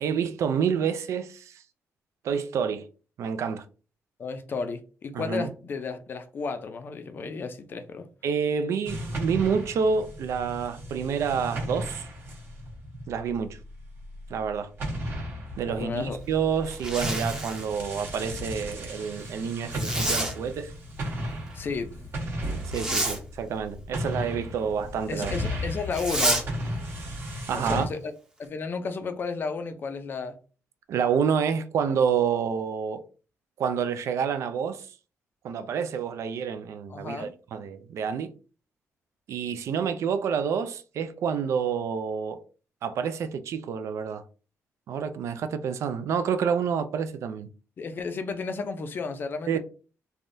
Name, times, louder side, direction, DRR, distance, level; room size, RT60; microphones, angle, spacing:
voice 1, 0.0-1.6 2.2-2.9 3.2-3.6 5.1-5.5 8.2-12.1 13.1-13.6 14.3-14.7 15.6-20.7 22.6-25.3 27.5-27.9 30.9-33.0 33.6-34.9 35.4-38.3 39.3-42.4 42.8-44.3 44.9-47.5 49.5-49.6, right 6 dB, 65° right, 0.3 m, -28 dB
voice 2, 4.2-8.1 15.7-16.2 21.5-21.9 25.1-26.5 27.5-28.1 28.4-30.4 36.9-37.3 47.8-49.6, left 4 dB, 40° left, 0.4 m, -33 dB
sound 1, 8.8-14.5 14.8-27.8, equal, 45° right, 1.1 m, -35 dB
Zipper (clothing), 16.6-17.7 19.7-20.3 22.6-23.2 25.9-26.4, right 1 dB, 10° right, 0.6 m, -28 dB
3.3 x 2.2 x 2.6 m
cardioid pair, 145°, 5 cm